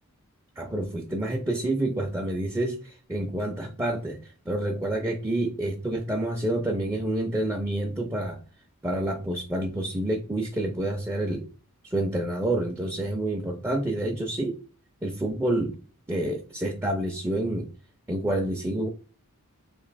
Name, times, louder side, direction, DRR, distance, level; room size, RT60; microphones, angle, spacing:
voice 1, 0.6-4.2 4.5-8.4 8.8-11.5 11.8-14.6 15.0-15.7 16.1-17.7 18.1-18.9, right 1 dB, 10° right, 2 dB, 0.4 m, -28 dB
3.0 x 2.5 x 3.9 m, 0.40 s
head